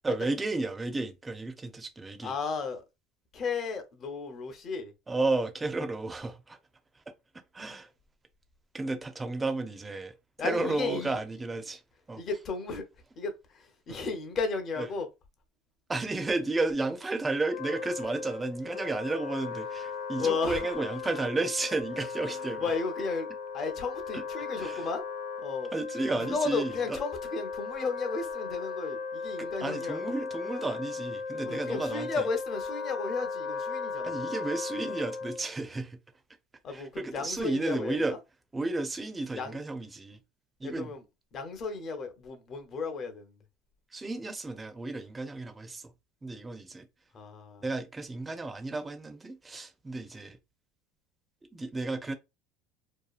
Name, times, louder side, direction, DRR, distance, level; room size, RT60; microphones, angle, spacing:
voice 1, 0.0-2.3 5.1-6.6 7.5-7.9 8.7-10.1 10.4-11.8 12.1-12.2 13.9-14.0 15.9-22.6 24.1-24.2 24.6-24.9 25.7-27.0 29.4-32.2 34.0-36.0 36.7-38.1 38.5-40.2 40.6-40.9 43.9-45.9 46.2-46.9 47.6-50.4 51.5-52.1, right 2 dB, 15° right, 0.5 m, -32 dB
voice 2, 2.2-2.8 3.3-4.9 10.4-11.2 12.2-12.8 13.2-15.1 20.2-20.7 22.3-23.3 23.5-25.0 25.4-25.7 26.1-30.1 31.4-34.2 36.6-38.2 39.3-39.6 40.6-41.0 41.3-43.4 47.1-47.7, left 4 dB, 40° left, 0.7 m, -34 dB
Wind instrument woodwind instrument, 17.4-35.5, left 5 dB, 80° left, 0.5 m, -37 dB
2.8 x 2.3 x 2.4 m
supercardioid pair, 120°, 0 cm